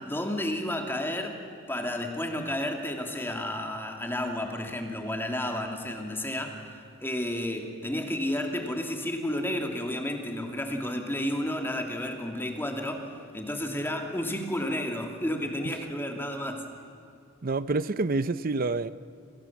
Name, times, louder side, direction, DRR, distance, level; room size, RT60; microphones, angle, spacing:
voice 1, 0.0-1.4 1.7-16.7, left 1 dB, 10° left, 2.5 m, -31 dB
voice 2, 17.4-18.9, right 3 dB, 45° right, 0.7 m, -27 dB
29.0 x 27.0 x 7.3 m
head